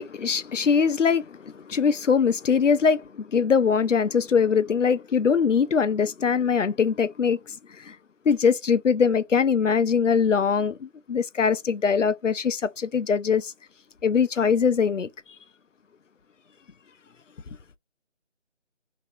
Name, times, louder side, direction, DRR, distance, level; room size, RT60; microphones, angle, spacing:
voice 1, 0.0-7.4 7.8-7.9 8.3-13.5 14.0-15.1, left 6 dB, 90° left, 0.7 m, -22 dB
2.9 x 2.9 x 4.4 m
figure-of-eight pair, 180°, 36 cm